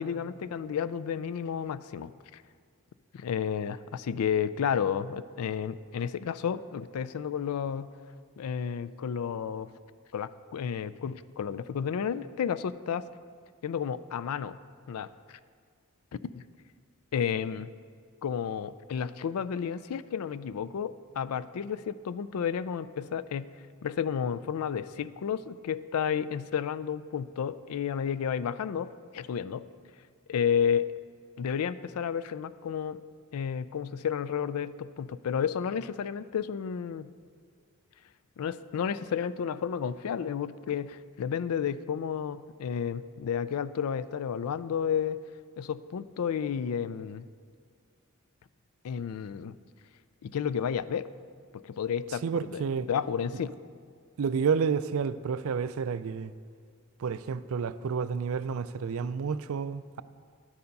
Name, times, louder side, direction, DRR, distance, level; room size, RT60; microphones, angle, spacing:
voice 1, 0.0-2.4 3.1-7.9 8.4-9.7 10.1-13.1 13.6-14.6 14.9-15.4 16.2-16.4 17.1-17.7 18.2-23.5 23.8-29.7 30.3-30.9 31.4-33.0 33.3-37.1 38.4-45.2 45.6-47.3 48.8-49.5 50.2-51.1 51.5-52.2 52.5-52.6 52.9-53.6, left 7 dB, 80° left, 0.4 m, -31 dB
voice 2, 52.1-52.9 54.2-56.3 57.0-60.0, right 6 dB, 70° right, 0.4 m, -30 dB
11.0 x 7.0 x 5.3 m
head